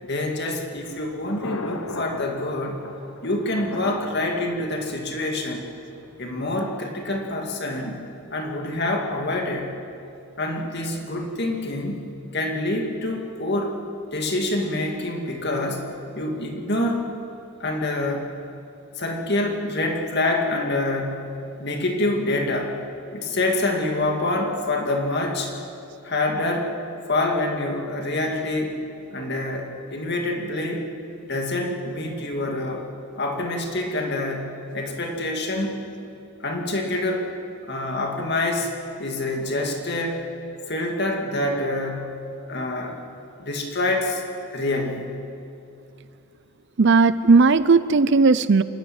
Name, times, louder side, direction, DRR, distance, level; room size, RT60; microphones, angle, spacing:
voice 1, 0.0-2.9 3.2-5.7 6.2-9.7 10.4-12.0 12.3-13.8 14.1-17.0 17.6-18.3 19.0-22.8 23.1-25.5 26.0-26.7 27.1-28.8 29.1-30.9 31.2-32.9 33.2-35.8 36.4-37.3 37.6-38.7 39.0-40.3 40.7-43.0 43.4-44.2 44.5-45.2, left 2 dB, 50° left, 2 dB, 2.4 m, -26 dB
Thunder, 0.6-6.6, left 2 dB, 75° left, 1.3 m, -39 dB
voice 2, 46.8-48.6, right 4 dB, 50° right, 15 dB, 0.5 m, -16 dB
26.5 x 12.5 x 8.9 m, 2.6 s
head